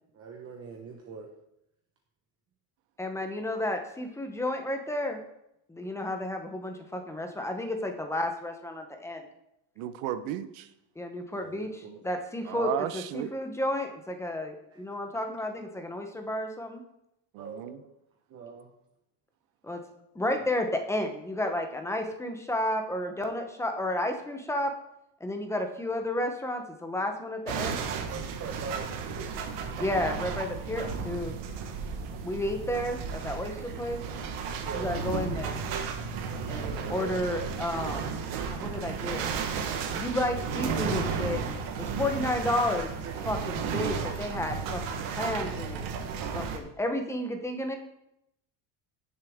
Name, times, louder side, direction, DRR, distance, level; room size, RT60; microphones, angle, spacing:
voice 1, 0.1-1.3 11.4-12.0 14.7-14.8 15.1-15.2 17.4-17.9 18.3-18.7 20.4-20.5 27.6-27.8 28.1-29.4 34.5-34.9 36.8-37.5 43.0-43.2, right 5 dB, 30° right, 2 dB, 1.0 m, -42 dB
voice 2, 3.0-5.2 5.7-9.3 11.0-16.8 19.6-19.8 20.1-24.7 25.2-27.8 28.1-28.2 29.8-31.3 32.2-34.0 34.8-35.6 36.5-39.2 39.9-41.4 41.8-45.9 46.3-47.8, left 1 dB, 5° left, 5 dB, 0.7 m, -32 dB
voice 3, 9.8-10.7 12.5-13.3 17.3-17.8, right 11 dB, 85° right, 12 dB, 0.9 m, -34 dB
sound 1, 27.5-46.6, right 6 dB, 70° right, 1.5 m, -33 dB
16.5 x 7.0 x 3.5 m, 0.81 s
cardioid pair, 165°, 48 cm